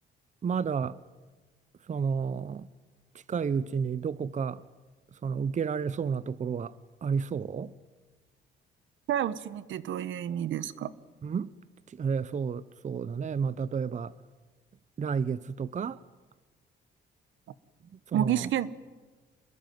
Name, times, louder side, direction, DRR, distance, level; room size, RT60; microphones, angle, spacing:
voice 1, 0.4-1.0 1.9-2.7 3.1-4.6 5.2-6.7 7.0-7.7 11.2-11.5 11.9-14.1 15.0-16.0 17.9-18.5, right 6 dB, 35° right, 0.7 m, -31 dB
voice 2, 9.1-11.0 18.1-18.7, right 10 dB, 75° right, 1.1 m, -30 dB
26.5 x 21.5 x 9.4 m
cardioid pair, 90°, 20 cm